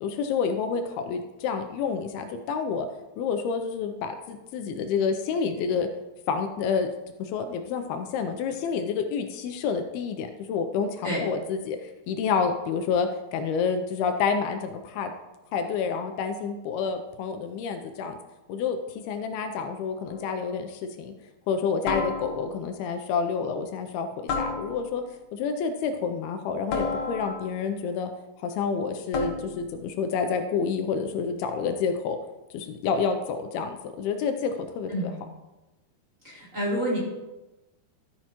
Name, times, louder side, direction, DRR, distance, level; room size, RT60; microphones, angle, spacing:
voice 1, 0.0-2.9 3.2-5.9 6.3-6.9 7.2-15.1 15.5-18.2 18.5-21.2 21.5-25.0 25.3-28.1 28.4-32.2 32.5-35.1, left 5 dB, 80° left, 6 dB, 2.5 m, -29 dB
sound 1, 20.1-20.4 21.9-22.6 24.3-25.1 26.7-27.6 29.1-29.7, left 4 dB, 65° left, 2.0 m, -31 dB
voice 2, 36.2-37.0, equal, 20° right, -6 dB, 3.2 m, -28 dB
13.5 x 9.0 x 3.0 m, 1.1 s
omnidirectional pair, 4.6 m